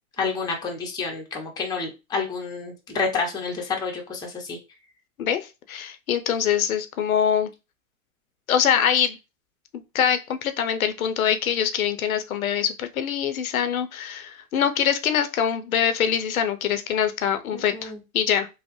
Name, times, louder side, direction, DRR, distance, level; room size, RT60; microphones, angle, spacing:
voice 1, 0.2-4.6 17.5-18.0, left 4 dB, 10° left, 0.6 m, -29 dB
voice 2, 5.2-7.5 8.5-9.2 9.9-18.5, left 8 dB, 85° left, 0.6 m, -24 dB
3.1 x 2.0 x 2.9 m
hypercardioid pair, 115°, 41 cm